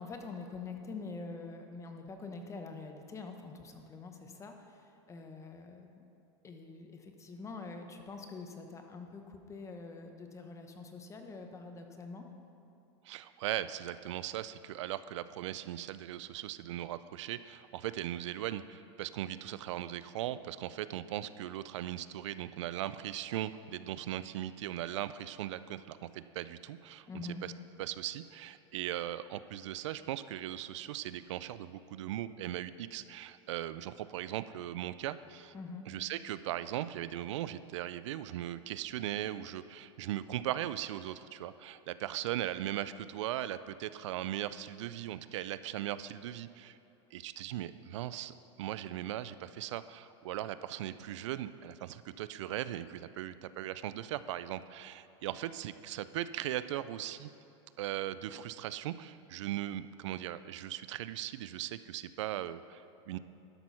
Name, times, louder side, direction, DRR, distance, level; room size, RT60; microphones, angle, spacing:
voice 1, 0.0-6.0 6.4-12.2 27.1-27.4 35.5-35.8, left 4 dB, 20° left, 5 dB, 1.0 m, -45 dB
voice 2, 13.0-27.1 27.4-27.5 27.8-35.5 35.9-46.8 47.1-57.3 57.8-63.2, right 12 dB, 85° right, 14 dB, 0.4 m, -38 dB
12.0 x 6.1 x 5.6 m, 2.9 s
supercardioid pair, 125°, 15 cm